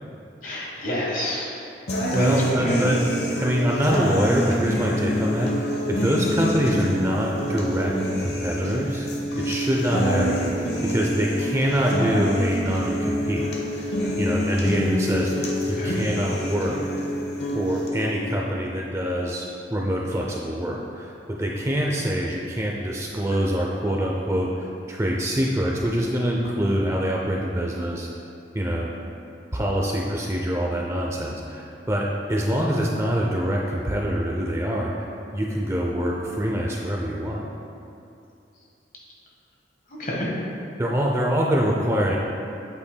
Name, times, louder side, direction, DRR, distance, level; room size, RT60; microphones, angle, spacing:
voice 1, 0.4-1.5 2.1-2.9 15.8-16.0 40.0-40.3, equal, 45° left, -4 dB, 1.4 m, -27 dB
sound 1, 1.9-17.9, equal, 70° left, 1.1 m, -26 dB
voice 2, 2.1-3.0 3.3-9.1 9.4-13.5 14.2-16.8 17.5-28.1 28.5-28.9 29.5-35.1 35.3-37.5 40.8-42.2, equal, 15° right, -2 dB, 0.5 m, -25 dB
8.2 x 8.2 x 2.2 m, 2.7 s
head